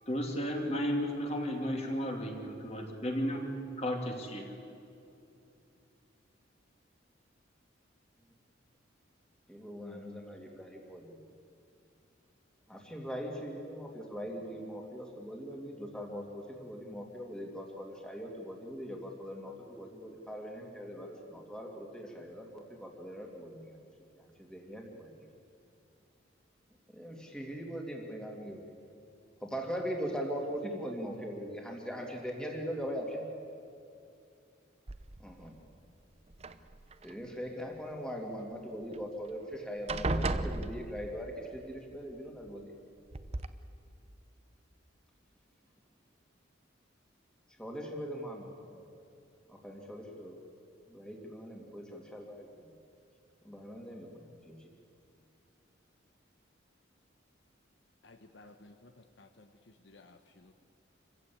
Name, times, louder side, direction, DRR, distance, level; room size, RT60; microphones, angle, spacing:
voice 1, 0.0-4.6, equal, 35° left, 2 dB, 2.8 m, -34 dB
voice 2, 9.5-11.2 12.7-23.8 24.1-25.3 26.9-28.6 29.4-33.2 35.2-35.6 37.0-42.7 47.6-48.8 49.5-50.4 50.9-52.5 53.4-54.7, equal, 5° left, 1 dB, 2.6 m, -41 dB
sound 1, 34.9-35.4 36.3-37.1 38.9-39.0 39.3-39.5 39.9-41.3 42.5-42.6 43.1-43.5, right 2 dB, 30° right, 0.7 m, -35 dB
voice 3, 58.0-60.5, left 2 dB, 65° left, 7 dB, 1.0 m, -57 dB
27.0 x 15.5 x 8.6 m, 2.7 s
head